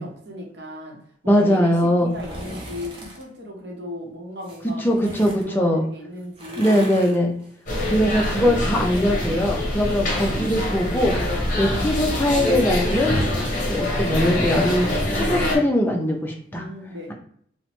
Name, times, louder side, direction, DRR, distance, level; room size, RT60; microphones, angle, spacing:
voice 1, 0.0-6.9 7.8-8.5 10.0-10.7 16.5-17.1, left 1 dB, 65° right, -1 dB, 0.8 m, -37 dB
voice 2, 1.2-2.1 4.6-5.8 6.6-7.3 7.9-13.1 13.7-16.7, equal, 10° left, 1 dB, 0.4 m, -21 dB
sound 1, 2.0-3.2 4.4-5.5 6.2-9.7 10.0-13.4 13.7-13.8, right 1 dB, 30° right, 0.7 m, -41 dB
sound 2, 7.7-15.6, left 1 dB, 45° left, 0.7 m, -24 dB
2.9 x 2.1 x 2.9 m, 0.64 s
head